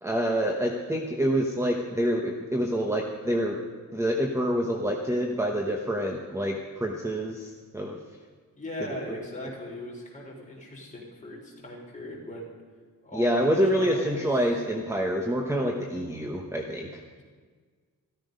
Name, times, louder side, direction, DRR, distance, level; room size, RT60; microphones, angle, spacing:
voice 1, 0.0-3.6 3.9-8.0 9.1-9.2 13.1-17.0, equal, 10° right, 2 dB, 1.0 m, -27 dB
voice 2, 8.6-12.5 13.0-14.5, left 1 dB, 20° left, -3 dB, 4.0 m, -39 dB
14.5 x 13.0 x 5.2 m, 1.5 s
wide cardioid pair, 145°, 34 cm